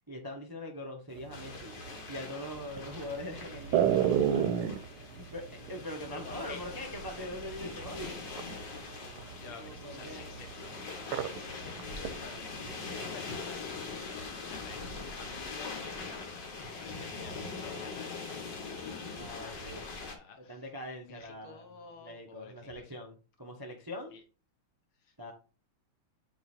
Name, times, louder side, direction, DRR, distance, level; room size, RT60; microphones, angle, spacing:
voice 1, 0.1-1.8 2.1-8.3 9.6-10.2 19.1-19.8 20.5-24.2 25.2-25.3, left 1 dB, 20° right, 2 dB, 0.5 m, -43 dB
sound 1, 1.2-7.7 8.0-11.5 11.8-13.0, right 9 dB, 90° right, 1.5 m, -30 dB
sound 2, 1.3-20.1, left 4 dB, 60° left, 2.1 m, -42 dB
voice 2, 6.1-6.6 9.4-10.5 11.3-20.6 21.1-22.9 24.1-24.2, left 5 dB, 75° left, 5 dB, 2.1 m, -51 dB
7.8 x 3.3 x 4.3 m, 0.34 s
omnidirectional pair, 2.3 m